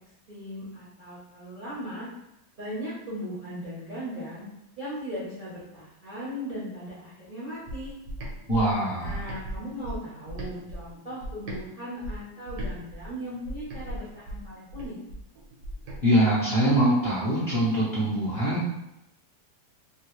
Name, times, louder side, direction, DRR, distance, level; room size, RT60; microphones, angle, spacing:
voice 1, 0.3-2.1 2.6-4.4 4.8-7.9 9.0-15.0, equal, 40° right, -9 dB, 0.7 m, -38 dB
sound 1, 7.7-11.6 12.0-16.0, right 1 dB, 75° right, 1.3 m, -38 dB
voice 2, 8.5-9.2 16.0-18.6, right 1 dB, 45° left, -8 dB, 0.9 m, -23 dB
3.0 x 2.7 x 3.0 m, 0.87 s
omnidirectional pair, 1.8 m